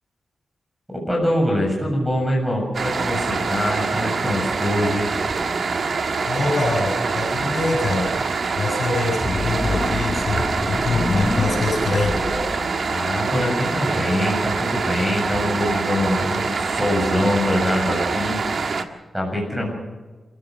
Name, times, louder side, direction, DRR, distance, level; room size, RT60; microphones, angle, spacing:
voice 1, 1.1-5.3 12.9-18.6 19.1-19.8, left 1 dB, 5° right, -1 dB, 7.3 m, -24 dB
sound 1, 2.7-18.8, right 4 dB, 55° right, 1.6 m, -25 dB
voice 2, 6.3-8.1 8.5-12.1, left 3 dB, 50° left, 1 dB, 7.3 m, -24 dB
sound 2, 9.2-13.5, left 2 dB, 15° left, 1.2 m, -28 dB
27.5 x 16.0 x 6.5 m, 1.3 s
wide cardioid pair, 140°, 0 cm